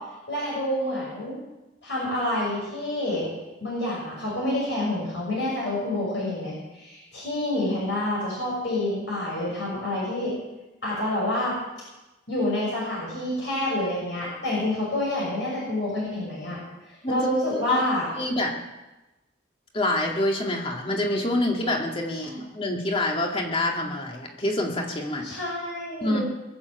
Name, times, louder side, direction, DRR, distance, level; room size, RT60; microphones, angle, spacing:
voice 1, 0.3-1.4 1.8-3.3 3.6-10.3 10.8-11.5 12.3-16.6 16.9-18.0 22.1-22.4 25.2-26.2, left 1 dB, 65° left, -5 dB, 6.5 m, -28 dB
voice 2, 18.1-18.5 19.7-25.3 26.0-26.2, left 1 dB, 30° left, 1 dB, 2.3 m, -26 dB
22.0 x 7.6 x 8.1 m, 1.0 s
head